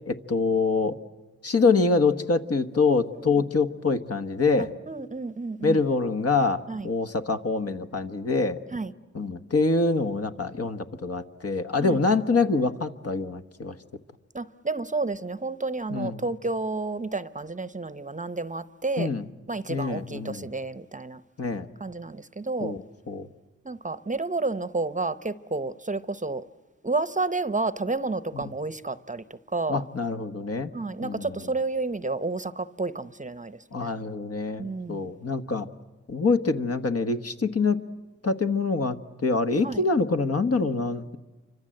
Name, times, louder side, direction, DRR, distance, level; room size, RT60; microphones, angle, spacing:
voice 1, 0.1-0.9 1.4-4.7 5.6-8.6 9.1-13.8 15.9-16.2 19.0-19.3 19.7-20.5 21.4-21.7 22.6-22.8 23.1-23.3 28.3-28.4 29.7-30.7 31.0-31.4 33.7-35.7 36.1-37.8 38.2-39.0 39.2-41.2, left 4 dB, 55° left, 1.3 m, -25 dB
voice 2, 4.6-5.8 6.7-6.9 8.7-8.9 11.8-12.1 14.3-19.1 19.5-21.2 21.8-22.7 23.6-26.4 26.8-29.8 30.7-34.0 34.6-35.1 39.6-39.8, right 3 dB, 25° right, 0.8 m, -31 dB
29.0 x 25.5 x 7.7 m
wide cardioid pair, 80°, 29 cm